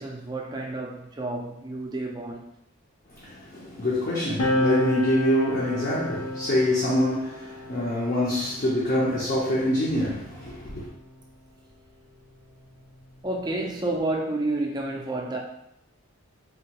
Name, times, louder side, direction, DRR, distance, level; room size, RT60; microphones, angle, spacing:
voice 1, 0.0-2.5 13.2-15.4, right 2 dB, 20° right, 0.4 m, -30 dB
voice 2, 3.2-10.9, left 1 dB, 40° left, 0.6 m, -25 dB
sound 1, 4.4-11.3 12.3-14.1, left 1 dB, 85° left, 0.7 m, -32 dB
3.5 x 2.2 x 2.8 m
head